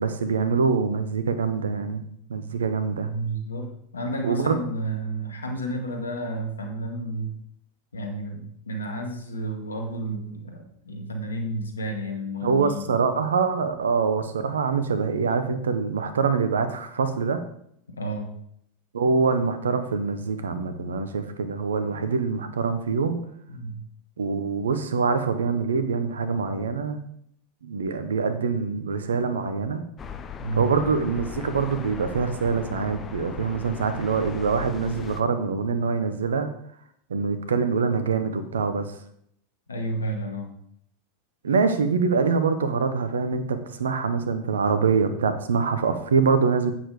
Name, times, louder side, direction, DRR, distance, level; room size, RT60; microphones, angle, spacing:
voice 1, 0.0-2.0 2.3-3.1 4.2-4.6 12.4-17.4 18.9-23.2 24.2-27.1 27.6-29.8 30.5-36.5 37.1-38.9 41.4-46.7, right 5 dB, 80° right, 10 dB, 1.2 m, -24 dB
voice 2, 3.0-7.3 7.9-12.9 17.9-18.3 23.5-23.8 30.4-30.7 39.7-40.5, right 1 dB, 85° left, 4 dB, 1.9 m, -31 dB
sound 1, 30.0-35.2, left 6 dB, 30° left, 1.0 m, -38 dB
8.8 x 7.5 x 5.0 m, 0.70 s
hypercardioid pair, 85°, 0 cm